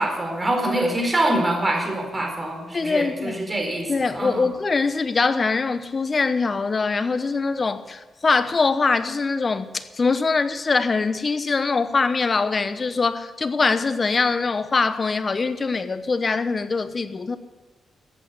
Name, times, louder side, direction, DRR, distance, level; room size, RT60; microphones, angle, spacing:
voice 1, 0.0-4.5, right 1 dB, 20° right, 4.4 m, -24 dB
voice 2, 2.7-3.4 3.9-17.4, left 4 dB, 40° left, 1.0 m, -23 dB
14.5 x 8.5 x 8.2 m
cardioid pair, 85°, 0 cm